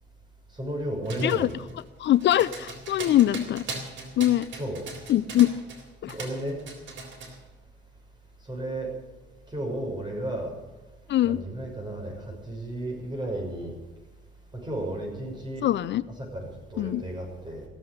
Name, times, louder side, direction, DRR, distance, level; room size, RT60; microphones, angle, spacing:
voice 1, 0.5-1.5 4.5-4.8 6.1-6.6 8.5-8.9 9.5-10.5 11.2-13.7 14.5-15.7 16.2-17.7, right 1 dB, 20° right, 0 dB, 6.1 m, -33 dB
sound 1, 1.0-5.8 6.1-7.4, right 3 dB, 70° right, 3.8 m, -38 dB
voice 2, 2.0-3.6 4.2-4.5 5.1-5.5 6.0-6.2 11.1-11.4 15.6-16.0 16.8-17.0, left 13 dB, 65° left, 15 dB, 0.5 m, -22 dB
16.0 x 7.7 x 9.7 m, 1.2 s
cardioid pair, 90°, 20 cm